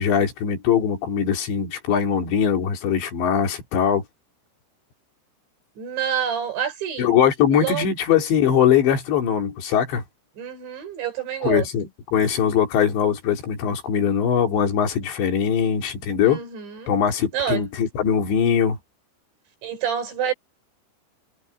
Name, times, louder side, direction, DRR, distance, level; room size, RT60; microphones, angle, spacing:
voice 1, 0.0-4.0 7.0-10.0 11.4-11.9 12.1-16.4 16.9-18.8, left 8 dB, 70° left, 5.3 m, -21 dB
voice 2, 5.8-7.2 7.5-7.9 10.4-11.7 16.2-16.9 17.3-17.6 19.6-20.3, right 9 dB, 75° right, 7.4 m, -27 dB
omnidirectional pair, 5.3 m